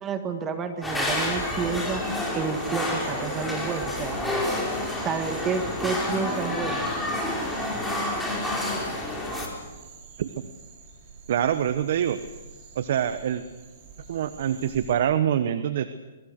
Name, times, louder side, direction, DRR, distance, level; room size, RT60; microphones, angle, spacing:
voice 1, 0.0-2.0 2.3-4.2 5.0-6.8, right 5 dB, 20° right, 7 dB, 1.7 m, -30 dB
sound 1, 0.8-9.5, left 1 dB, 5° left, 4.8 m, -29 dB
sound 2, 1.1-14.9, right 5 dB, 35° right, 5.8 m, -48 dB
voice 2, 11.3-12.2 12.7-13.4 14.1-15.9, right 9 dB, 60° right, 12 dB, 1.0 m, -25 dB
24.0 x 22.5 x 6.6 m, 1.2 s
hypercardioid pair, 140°, 0 cm